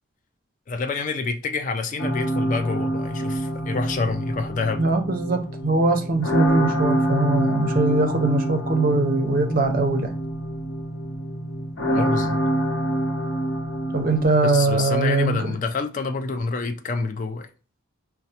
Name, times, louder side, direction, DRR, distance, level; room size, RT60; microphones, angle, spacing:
voice 1, 0.7-4.8 11.9-12.4 14.4-17.5, left 4 dB, 40° left, 0.3 m, -27 dB
sound 1, 2.0-14.2, right 1 dB, 65° left, 0.9 m, -26 dB
voice 2, 4.8-10.1 13.9-15.5, right 2 dB, 40° right, 0.5 m, -22 dB
5.1 x 2.0 x 2.8 m
head